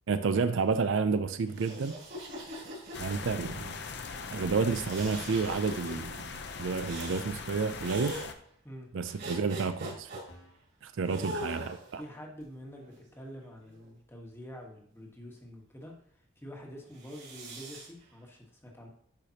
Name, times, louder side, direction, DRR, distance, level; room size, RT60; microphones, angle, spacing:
voice 1, 0.1-2.0 3.0-3.8 4.3-8.2 8.9-10.1 10.8-12.0, right 4 dB, 70° right, 0.4 m, -30 dB
sound 1, 1.5-3.5 4.8-5.9 6.8-7.3 7.8-8.3 9.2-10.2 11.1-12.0 12.8-13.9 16.9-17.9, right 1 dB, 55° right, 3.1 m, -42 dB
sound 2, 2.9-8.3, left 5 dB, 55° left, 0.6 m, -41 dB
sound 3, 4.2-4.4 5.1-5.2 5.4-5.8 6.6-6.8 7.5-7.6 7.8-8.2 9.1-9.2 10.0-10.1 10.3-10.6 11.5-11.7 12.4-12.5, left 1 dB, 90° left, 1.8 m, -55 dB
voice 2, 12.0-15.9 16.4-18.9, equal, 10° left, 1.3 m, -46 dB
10.5 x 5.0 x 2.8 m
head